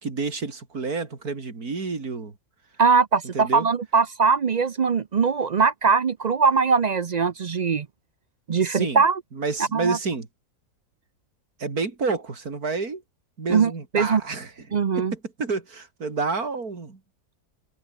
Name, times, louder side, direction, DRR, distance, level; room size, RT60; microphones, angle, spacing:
voice 1, 0.0-2.3 3.3-3.7 8.6-9.0 9.4-10.3 11.6-13.0 13.4-14.5 15.0-17.0, right 4 dB, 80° right, 3.7 m, -29 dB
voice 2, 2.8-7.9 8.5-9.2 9.7-10.0 13.5-14.2 14.7-15.1, right 5 dB, 55° right, 0.4 m, -21 dB
omnidirectional pair, 1.6 m